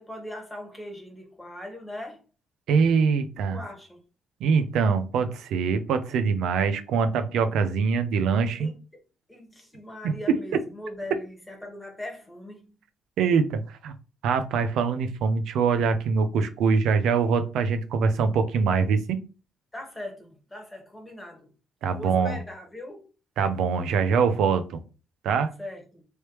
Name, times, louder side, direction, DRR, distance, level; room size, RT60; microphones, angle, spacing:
voice 1, 0.0-2.2 3.5-4.0 8.6-8.8 9.3-12.8 19.7-21.5 21.9-23.1 25.6-26.1, left 1 dB, 10° left, 1.4 m, -40 dB
voice 2, 2.7-3.6 4.4-8.7 13.2-13.9 14.2-19.2 21.8-22.4 23.4-24.8 25.2-25.5, right 5 dB, 85° right, 0.5 m, -23 dB
3.2 x 3.1 x 3.0 m
cardioid pair, 90°, 0 cm